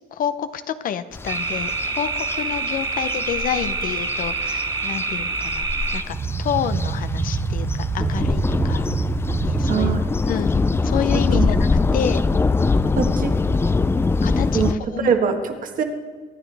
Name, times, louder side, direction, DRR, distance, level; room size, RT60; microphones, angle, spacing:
voice 1, 0.1-5.7 5.9-8.8 9.4-9.9 10.3-12.2 14.2-15.1, left 9 dB, 55° left, 11 dB, 0.7 m, -29 dB
sound 1, 1.1-14.7, left 3 dB, 15° left, 0.4 m, -23 dB
sound 2, 1.3-10.0, right 4 dB, 25° right, 0.8 m, -26 dB
voice 2, 9.7-10.0 11.3-11.7 13.0-13.3 14.5-15.8, right 6 dB, 55° right, 5 dB, 1.7 m, -23 dB
24.0 x 9.9 x 3.5 m, 1.5 s
cardioid pair, 110°, 17 cm